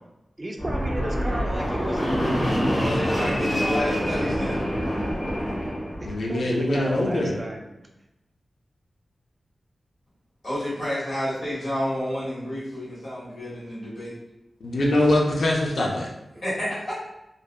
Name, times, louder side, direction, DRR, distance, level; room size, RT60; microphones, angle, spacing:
voice 1, 0.4-3.9 6.0-7.7, right 1 dB, 25° right, 1 dB, 0.3 m, -34 dB
Fixed-wing aircraft airplane, 0.6-6.2, equal, 40° left, 1.2 m, -26 dB
voice 2, 2.8-4.6 10.4-14.1 16.4-16.9, left 1 dB, 55° left, -9 dB, 1.4 m, -30 dB
voice 3, 6.0-7.4 14.6-16.1, left 1 dB, 75° left, -2 dB, 0.4 m, -23 dB
2.6 x 2.2 x 2.2 m, 0.93 s
wide cardioid pair, 135°, 0 cm